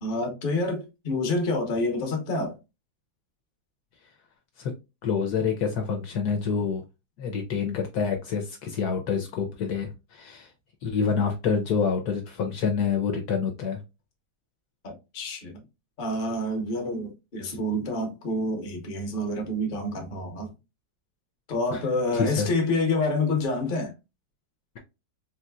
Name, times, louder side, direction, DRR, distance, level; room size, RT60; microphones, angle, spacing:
voice 1, 0.0-2.6 14.8-15.6 16.0-20.5 21.5-23.9, left 2 dB, 40° left, 0.8 m, -28 dB
voice 2, 5.0-6.8 7.2-10.5 10.8-13.8 21.7-21.8 22.1-22.5, left 6 dB, 70° left, 1.1 m, -27 dB
3.9 x 2.8 x 2.2 m
omnidirectional pair, 1.9 m